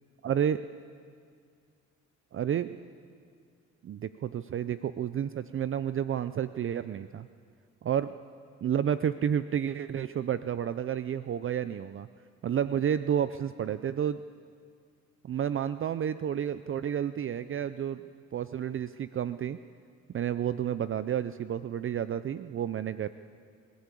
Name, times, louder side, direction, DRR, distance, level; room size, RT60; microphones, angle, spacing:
voice 1, 0.2-0.6 2.3-2.8 3.8-7.3 7.8-8.1 8.6-12.1 12.4-14.2 15.2-18.1 18.3-19.6 20.1-23.1, right 9 dB, 45° right, 13 dB, 0.5 m, -30 dB
25.5 x 14.5 x 8.5 m, 2.1 s
cardioid pair, 90°, 30 cm